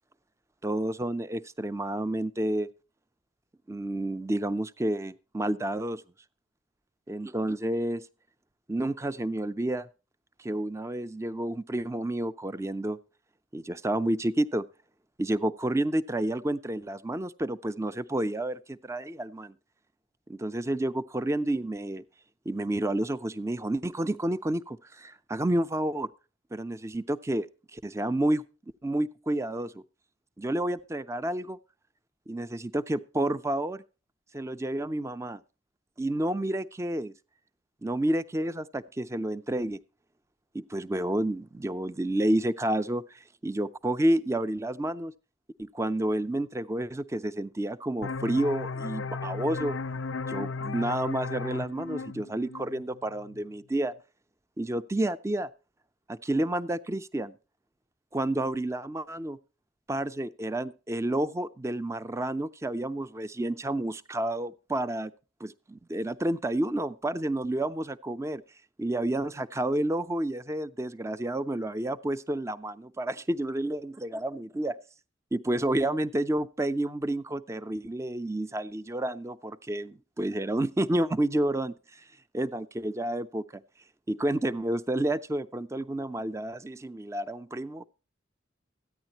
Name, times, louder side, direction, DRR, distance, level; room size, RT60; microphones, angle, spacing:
voice 1, 0.6-2.7 3.7-6.0 7.1-8.1 8.7-9.9 10.4-13.0 13.5-14.6 15.2-19.5 20.3-22.0 22.5-26.1 26.5-28.4 28.8-29.8 30.4-31.6 32.3-33.8 34.3-35.4 36.0-37.1 37.8-39.8 40.5-45.1 45.6-49.8 50.3-53.9 54.6-55.5 56.1-57.3 58.1-59.4 59.9-65.1 65.4-68.4 68.8-74.8 75.3-82.0 82.3-83.6 84.1-87.8, right 1 dB, 15° right, 0.4 m, -30 dB
sound 1, 48.0-53.4, left 4 dB, 75° left, 0.5 m, -35 dB
14.0 x 9.7 x 2.8 m
head